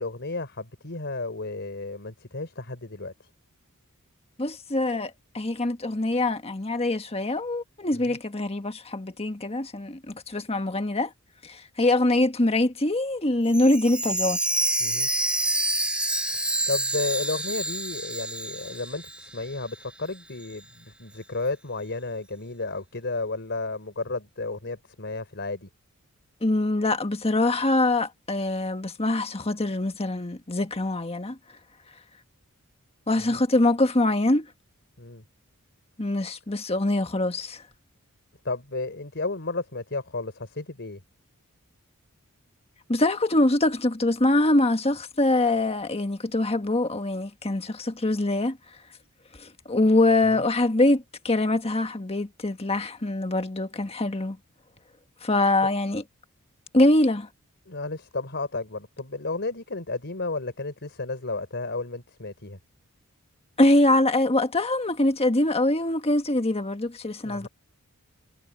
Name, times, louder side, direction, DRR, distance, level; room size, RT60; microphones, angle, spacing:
voice 1, 0.0-3.1 7.9-8.2 14.8-15.1 16.7-25.7 33.2-33.4 35.0-35.2 38.4-41.0 50.3-50.4 55.6-55.7 57.7-62.6 67.2-67.5, left 3 dB, 50° left, 4.0 m, -33 dB
voice 2, 4.4-11.1 11.4-14.4 26.4-31.4 33.1-34.5 36.0-37.6 42.9-48.6 49.4-54.4 55.2-56.0 56.7-57.3 63.6-67.5, left 2 dB, 25° left, 1.5 m, -24 dB
Chime, 13.5-19.4 19.7-19.8 20.4-20.5, right 1 dB, 5° right, 1.7 m, -28 dB
head